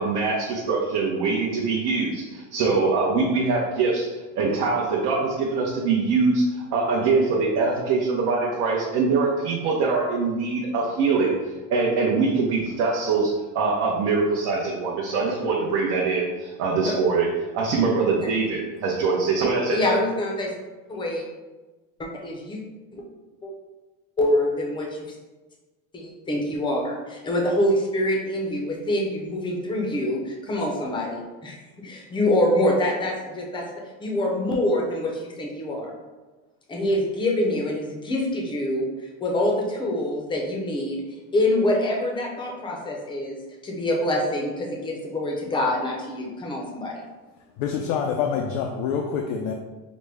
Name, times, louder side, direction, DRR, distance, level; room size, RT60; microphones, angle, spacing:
voice 1, 0.0-19.8, right 4 dB, 55° right, -3 dB, 0.7 m, -23 dB
voice 2, 19.7-20.5 20.9-21.2 22.0-22.6 22.9-23.0 23.4-23.5 24.2-25.1 25.9-33.7 34.0-35.9 36.7-38.9 39.2-41.0 41.3-43.4 43.6-47.0, left 1 dB, 15° left, 0 dB, 0.6 m, -25 dB
voice 3, 47.6-49.5, left 7 dB, 85° left, 2 dB, 0.5 m, -26 dB
5.1 x 2.1 x 3.3 m, 1.2 s
cardioid pair, 155°, 35 cm